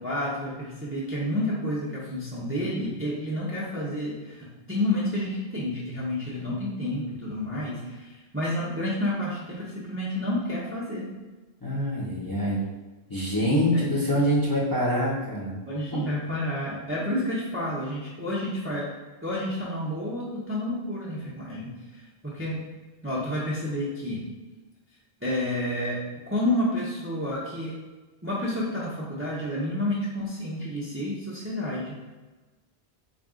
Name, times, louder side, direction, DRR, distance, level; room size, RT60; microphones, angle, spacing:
voice 1, 0.0-11.1 13.7-13.8 15.6-18.9 19.2-22.6 23.0-24.2 25.2-26.0 26.3-27.7 28.2-32.0, left 1 dB, 15° right, -7 dB, 0.6 m, -30 dB
voice 2, 11.6-12.6 13.1-15.6 15.9-16.0, equal, 20° left, -7 dB, 0.7 m, -25 dB
4.2 x 2.3 x 3.6 m, 1.2 s
omnidirectional pair, 1.1 m